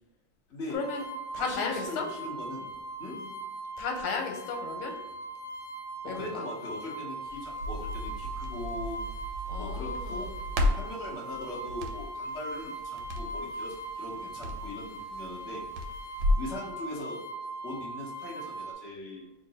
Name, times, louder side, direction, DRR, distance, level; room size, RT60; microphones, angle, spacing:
voice 1, 0.7-1.0 1.3-2.1 3.1-3.3 3.8-4.9 6.0-6.5 9.5-10.3, left 4 dB, 90° left, 3 dB, 1.6 m, -34 dB
sound 1, 0.7-18.7, right 2 dB, 30° left, 1.1 m, -40 dB
voice 2, 1.3-2.7 3.0-3.2 6.0-9.0 9.6-10.3 10.8-15.6 16.4-17.2 17.6-19.3, left 1 dB, 50° left, -4 dB, 0.8 m, -40 dB
Crackle, 7.3-16.5, left 1 dB, 75° right, 1.3 m, -34 dB
3.7 x 2.5 x 3.9 m, 1.0 s
omnidirectional pair, 2.3 m